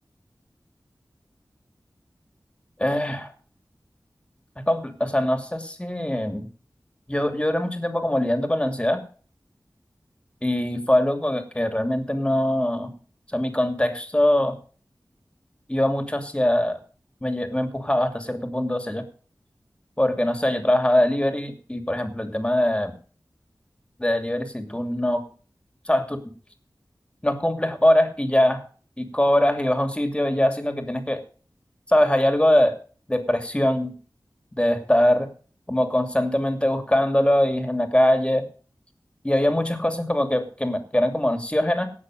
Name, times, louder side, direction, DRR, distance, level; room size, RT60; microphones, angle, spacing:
voice 1, 2.8-3.3 4.7-6.5 7.1-9.0 10.4-13.0 13.3-14.6 15.7-16.8 17.2-19.1 20.0-22.9 24.0-25.2 25.9-26.2 27.2-28.6 29.0-31.2 31.9-32.7 33.1-33.9 34.6-35.3 35.7-38.5 39.2-41.9, left 1 dB, 15° left, 7 dB, 2.7 m, -22 dB
17.5 x 6.4 x 6.5 m, 0.40 s
wide cardioid pair, 60°, 7 cm